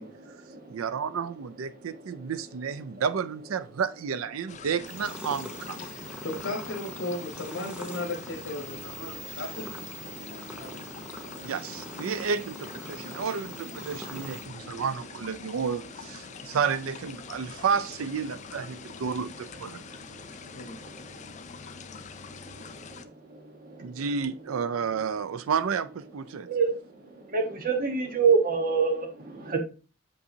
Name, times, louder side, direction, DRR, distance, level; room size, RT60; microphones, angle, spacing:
voice 1, 0.0-1.2 1.7-2.4 2.8-3.0 3.7-3.8 4.4-4.6 5.8-6.3 7.0-7.2 7.5-12.2 12.9-14.9 15.4-15.6 16.2-16.6 17.2-17.6 18.7-19.2 19.5-24.7 24.9-25.1 25.4-25.5 26.3-29.6, right 5 dB, 45° right, 1.2 m, -33 dB
voice 2, 0.7-5.8 11.4-19.8 23.8-26.5, right 6 dB, 80° right, 0.4 m, -31 dB
sound 1, 4.5-23.0, left 6 dB, 35° left, 0.4 m, -45 dB
sound 2, 4.9-14.4, equal, 5° right, 0.7 m, -43 dB
voice 3, 5.9-9.7 20.5-20.9, left 2 dB, 85° left, 1.3 m, -36 dB
6.7 x 5.4 x 2.7 m
head